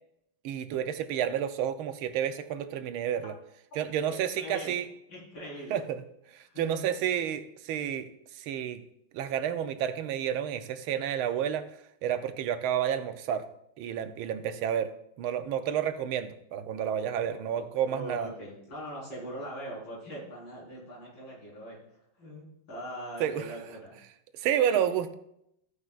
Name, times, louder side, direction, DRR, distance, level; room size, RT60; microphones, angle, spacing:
voice 1, 0.4-3.3 3.8-4.8 5.7-6.0 6.3-8.1 8.3-8.8 9.1-11.7 12.0-13.4 13.8-14.9 15.2-18.3 23.2-23.5 24.3-25.1, right 9 dB, 85° right, 10 dB, 1.6 m, -30 dB
voice 2, 4.1-4.8 5.1-5.8 6.4-6.9 17.1-24.0, right 1 dB, 65° left, -5 dB, 5.2 m, -42 dB
15.0 x 9.7 x 2.5 m, 0.76 s
omnidirectional pair, 2.3 m